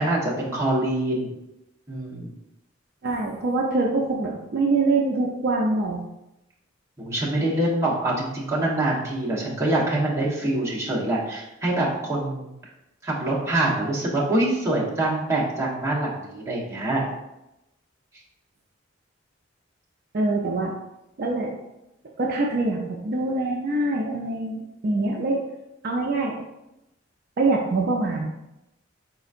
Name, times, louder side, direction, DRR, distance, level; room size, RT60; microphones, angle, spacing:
voice 1, 0.0-1.3 1.9-2.3 7.0-12.5 13.0-17.1, right 1 dB, 15° right, -6 dB, 1.0 m, -25 dB
voice 2, 3.0-6.0 20.1-20.7 21.2-21.5 22.2-25.4 25.8-26.4 27.4-28.2, right 2 dB, 50° right, 0 dB, 0.4 m, -24 dB
4.3 x 3.9 x 2.4 m, 0.90 s
head